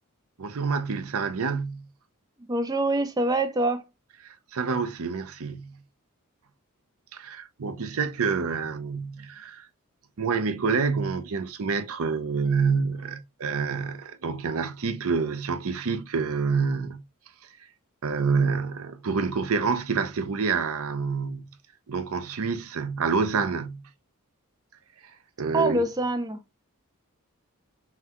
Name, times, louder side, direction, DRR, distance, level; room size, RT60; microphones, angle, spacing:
voice 1, 0.4-1.8 4.2-5.7 7.1-9.7 10.2-17.0 17.4-17.5 18.0-21.5 21.9-23.8 25.4-25.8, right 5 dB, 75° right, 0.6 m, -27 dB
voice 2, 2.5-3.8 25.5-26.4, right 2 dB, 15° right, 0.4 m, -25 dB
5.6 x 2.3 x 2.9 m
head